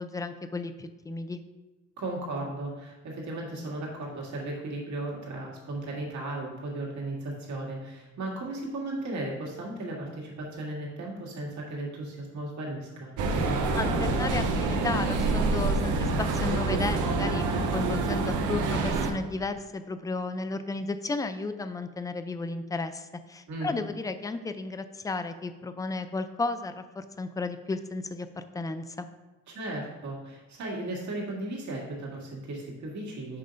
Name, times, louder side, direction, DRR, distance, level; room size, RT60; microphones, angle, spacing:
voice 1, 0.0-1.4 13.7-29.1, left 3 dB, 10° left, 10 dB, 0.4 m, -33 dB
voice 2, 2.0-13.1 23.5-23.7 29.5-33.4, right 2 dB, 70° right, -2 dB, 1.8 m, -36 dB
sound 1, 13.2-19.1, right 3 dB, 90° right, 0.7 m, -26 dB
5.5 x 3.7 x 5.1 m, 1.1 s
cardioid pair, 90°, 30 cm